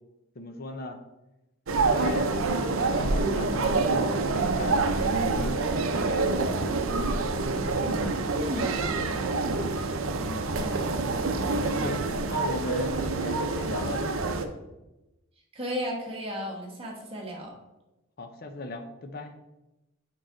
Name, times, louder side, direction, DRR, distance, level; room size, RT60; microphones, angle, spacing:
voice 1, 0.4-1.0 1.7-5.7 10.2-10.6 11.6-14.1 18.2-19.3, left 2 dB, 45° left, 6 dB, 0.6 m, -37 dB
sound 1, 1.7-14.5, right 3 dB, 70° right, 0.6 m, -27 dB
voice 2, 7.8-9.8 10.6-10.9 15.5-17.5, equal, 25° right, -2 dB, 1.3 m, -35 dB
6.5 x 4.8 x 3.8 m, 0.99 s
head